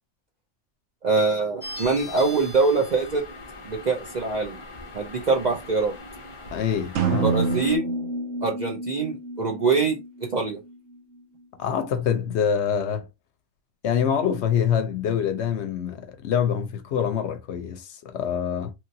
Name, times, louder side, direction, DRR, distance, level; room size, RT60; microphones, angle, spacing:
voice 1, 1.0-3.2 3.6-4.6 4.9-5.9 7.2-7.9 8.4-10.0 10.3-10.6, right 4 dB, 55° right, 0.5 m, -24 dB
sound 1, 1.6-7.8, left 2 dB, 40° left, 0.4 m, -40 dB
voice 2, 6.5-7.3 11.6-13.1 13.8-18.7, left 8 dB, 70° left, 0.8 m, -25 dB
sound 2, 7.0-10.8, right 3 dB, 70° right, 1.0 m, -28 dB
3.0 x 2.8 x 2.6 m
omnidirectional pair, 1.3 m